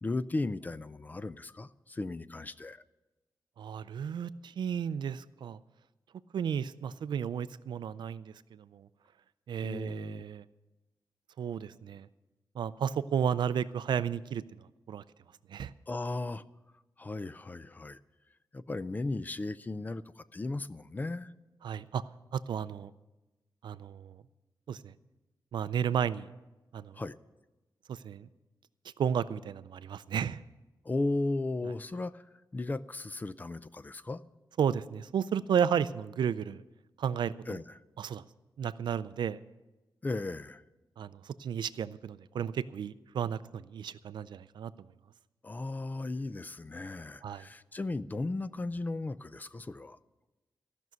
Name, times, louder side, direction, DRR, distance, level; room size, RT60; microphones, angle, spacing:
voice 1, 0.0-2.8 9.6-10.2 15.9-16.4 17.0-18.0 18.5-21.3 26.9-27.2 30.8-32.2 32.5-34.2 37.5-37.8 40.0-40.6 45.4-50.0, left 2 dB, 25° left, 15 dB, 0.4 m, -36 dB
voice 2, 3.6-5.6 6.3-8.9 9.5-10.4 11.4-12.1 12.6-14.4 14.9-15.0 15.5-15.7 21.6-22.0 22.3-22.9 23.6-24.2 24.7-24.9 25.5-26.3 26.7-27.0 27.9-28.3 29.0-30.4 34.6-36.6 37.0-37.6 38.0-38.2 38.6-39.4 41.0-44.7 47.2-47.4, right 8 dB, 85° right, 15 dB, 0.4 m, -33 dB
15.0 x 6.2 x 9.3 m, 1.1 s
wide cardioid pair, 130°, 8 cm